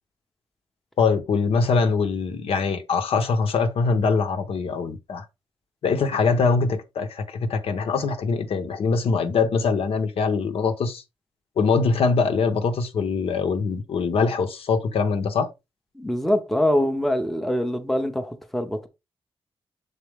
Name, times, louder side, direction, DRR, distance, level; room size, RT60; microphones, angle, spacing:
voice 1, 1.0-5.2 5.8-11.0 11.6-15.5, left 4 dB, 75° left, 1.0 m, -23 dB
voice 2, 16.0-18.9, left 1 dB, ahead, 0.7 m, -24 dB
6.7 x 4.2 x 3.4 m
wide cardioid pair, 165°, 10 cm